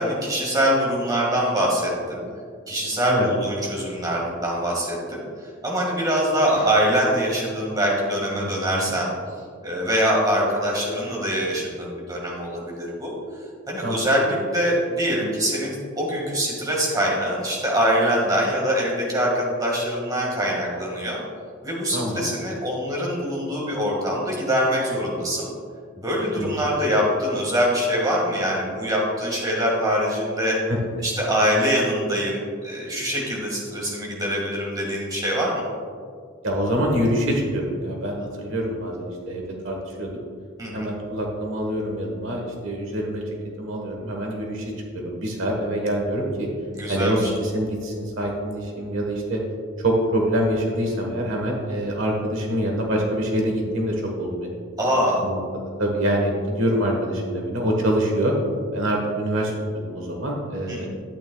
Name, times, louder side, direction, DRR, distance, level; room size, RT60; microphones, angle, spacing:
voice 1, 0.0-2.2 2.7-9.1 9.6-13.1 13.7-21.2 21.6-25.5 26.0-30.6 31.0-35.6 40.6-40.9 46.7-47.3 54.8-55.2 60.7-60.9, equal, 15° right, -3 dB, 1.8 m, -24 dB
voice 2, 8.4-8.9 13.8-14.0 21.9-22.2 26.4-26.7 30.7-30.8 36.4-40.1 40.7-43.2 43.6-44.6 44.9-46.5 46.9-49.4 49.8-54.6 55.2-55.4 55.8-58.3 58.7-59.5 59.8-60.9, equal, 65° right, 0 dB, 1.3 m, -25 dB
12.0 x 8.9 x 2.3 m, 2.1 s
head